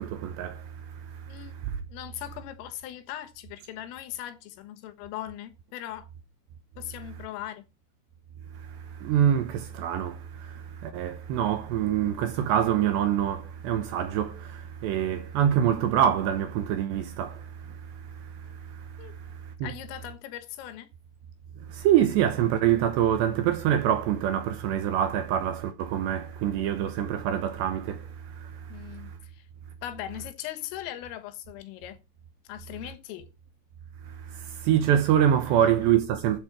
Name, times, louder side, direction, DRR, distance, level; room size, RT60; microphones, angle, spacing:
voice 1, 0.0-1.8 8.5-19.7 21.7-29.1 34.1-36.4, right 10 dB, 75° right, 2.8 m, -26 dB
voice 2, 1.3-1.6 1.9-6.1 6.8-7.6 19.0-19.1 19.6-20.9 28.7-29.5 29.8-32.0 32.5-33.3 35.6-35.7, left 12 dB, 80° left, 3.9 m, -39 dB
13.5 x 7.9 x 4.8 m
omnidirectional pair, 6.0 m